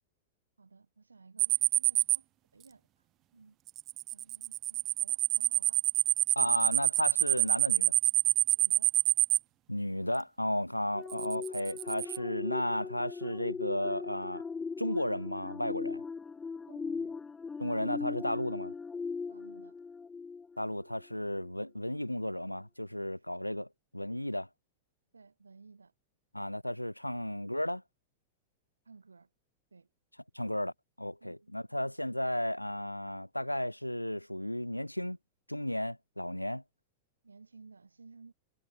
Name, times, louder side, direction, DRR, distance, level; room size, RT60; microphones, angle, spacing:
voice 1, 0.6-3.1 3.3-3.6 4.1-5.8 6.4-6.6 8.5-9.0 16.7-17.2 19.3-19.8 23.2-23.3 25.1-25.9 28.8-29.3 29.7-29.9 31.2-31.5 37.2-38.3, right 4 dB, 75° right, 5.1 m, -57 dB
sound 1, 1.4-2.2 3.7-9.4 11.1-12.2, right 15 dB, 35° right, 0.3 m, -27 dB
voice 2, 6.4-7.9 9.7-14.4 14.8-16.0 17.6-18.7 20.6-23.7 23.9-24.5 26.3-27.8 30.3-30.7 31.0-35.2 35.5-36.6, left 1 dB, 90° left, 0.9 m, -34 dB
sound 2, 10.9-20.8 21.3-21.5, left 5 dB, 15° left, 1.3 m, -39 dB
figure-of-eight pair, 90°, 0 cm